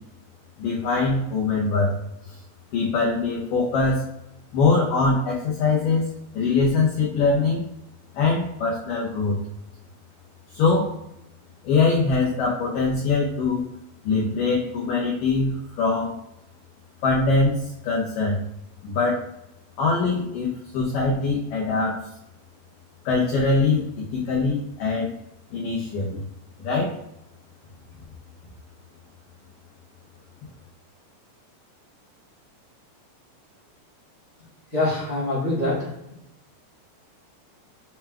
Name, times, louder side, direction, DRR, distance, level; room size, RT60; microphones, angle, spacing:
voice 1, 0.6-2.0 2.2-2.4 2.7-4.1 4.5-6.1 6.3-7.6 8.1-9.4 10.5-10.9 11.6-13.7 14.0-16.1 17.0-18.4 18.8-19.2 19.8-22.1 23.1-25.1 25.5-26.2 26.6-27.0, left 3 dB, 85° left, -4 dB, 1.9 m, -23 dB
voice 2, 34.7-35.9, left 2 dB, 45° right, -8 dB, 1.2 m, -24 dB
7.0 x 3.4 x 2.3 m, 0.84 s
omnidirectional pair, 4.8 m